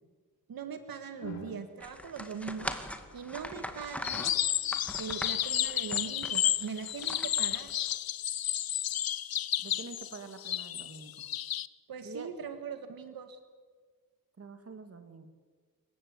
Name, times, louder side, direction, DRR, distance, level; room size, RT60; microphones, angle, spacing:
voice 1, 0.5-2.8 3.1-4.3 5.0-7.7 11.9-13.4, right 6 dB, 75° right, 8 dB, 1.9 m, -41 dB
sound 1, 1.1-1.7 2.8-3.2 4.1-5.1 5.8-6.2, left 2 dB, 50° left, 4.0 m, -50 dB
sound 2, 1.8-7.9, left 1 dB, 5° left, 2.0 m, -41 dB
sound 3, 4.0-11.7, left 11 dB, 90° left, 0.7 m, -32 dB
voice 2, 9.6-11.1 12.0-12.3 14.4-15.3, right 4 dB, 40° right, 8 dB, 2.5 m, -46 dB
27.0 x 15.5 x 9.6 m, 1.5 s
wide cardioid pair, 125°, 35 cm